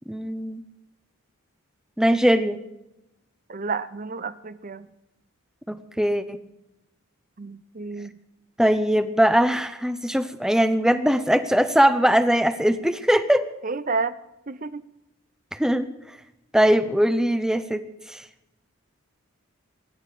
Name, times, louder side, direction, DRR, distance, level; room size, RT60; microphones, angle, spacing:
voice 1, 0.1-0.6 2.0-2.6 5.7-6.4 8.6-13.5 15.5-15.9 16.5-17.8 18.1-18.2, equal, 5° right, 11 dB, 0.8 m, -21 dB
voice 2, 3.5-4.9 7.4-8.2 13.6-14.2 14.5-14.8, right 4 dB, 40° right, 14 dB, 0.7 m, -30 dB
24.0 x 11.0 x 5.0 m, 0.94 s
head